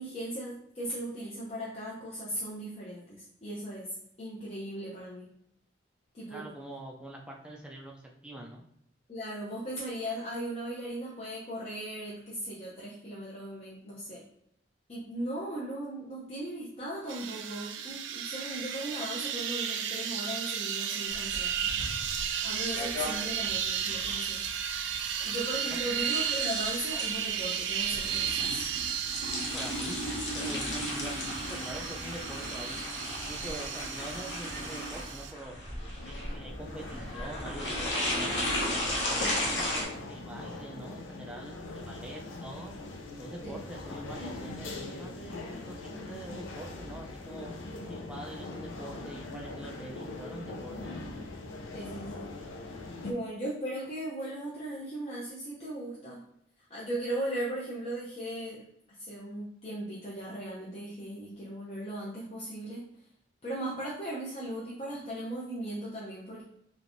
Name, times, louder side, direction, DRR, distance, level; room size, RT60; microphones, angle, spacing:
voice 1, 0.0-5.3 6.1-6.5 9.1-14.2 14.9-21.7 22.4-24.4 25.2-28.6 39.2-39.3 43.4-43.6 47.7-47.8 51.7-52.3 53.0-56.2 56.7-58.6 59.0-62.8 63.4-66.4, right 1 dB, 35° left, -7 dB, 0.6 m, -38 dB
voice 2, 6.3-8.6 25.7-25.8 29.3-32.8 33.2-35.6 36.0-38.5 38.8-39.8 40.1-42.7 43.1-47.5 47.8-51.0, right 1 dB, 5° right, 0 dB, 0.4 m, -44 dB
sound 1, 17.1-35.3, right 8 dB, 70° right, 0.4 m, -34 dB
sound 2, 21.1-39.8, left 1 dB, 70° left, 1.0 m, -35 dB
sound 3, 35.8-53.1, left 2 dB, 85° left, 0.5 m, -42 dB
3.2 x 3.1 x 2.6 m, 0.74 s
head